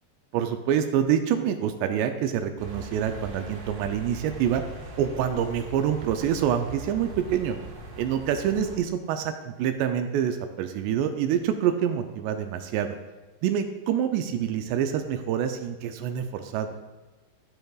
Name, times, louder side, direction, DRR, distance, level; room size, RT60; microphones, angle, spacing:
voice 1, 0.3-4.6 5.0-7.6 8.0-12.9 13.4-16.7, right 9 dB, 85° right, 7 dB, 2.6 m, -26 dB
sound 1, 2.6-8.8, right 1 dB, 65° right, 1.6 m, -41 dB
14.5 x 7.8 x 2.3 m, 1.2 s
omnidirectional pair, 5.0 m